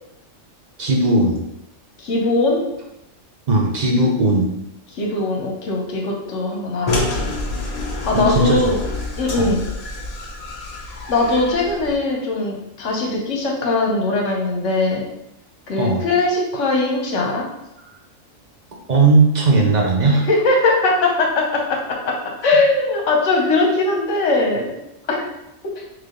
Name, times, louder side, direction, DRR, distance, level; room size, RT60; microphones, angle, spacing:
voice 1, 0.8-1.4 3.5-4.5 8.1-8.8 9.4-9.5 15.8-16.1 18.9-20.3, right 2 dB, 50° right, 0 dB, 0.5 m, -17 dB
voice 2, 2.0-2.6 4.9-7.3 7.8-8.8 9.2-9.6 11.1-15.0 15.7-17.4 20.3-22.1 22.4-24.7 25.1-25.2, left 2 dB, 70° left, 0 dB, 1.2 m, -20 dB
sound 1, 6.9-11.9, left 2 dB, 45° left, 0.5 m, -27 dB
3.4 x 3.1 x 3.7 m, 0.85 s
omnidirectional pair, 1.4 m